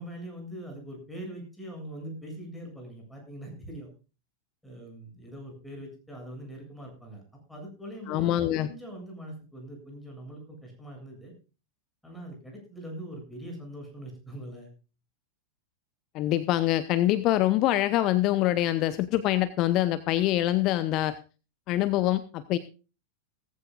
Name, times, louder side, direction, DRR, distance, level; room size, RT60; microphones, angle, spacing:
voice 1, 0.0-3.9 4.6-7.2 7.5-11.3 12.0-14.7, right 1 dB, 5° left, 0 dB, 7.8 m, -42 dB
voice 2, 8.1-8.7 16.1-21.2 21.7-22.6, left 14 dB, 40° left, 14 dB, 0.8 m, -25 dB
18.5 x 15.0 x 2.5 m, 0.33 s
figure-of-eight pair, 90°, 0 cm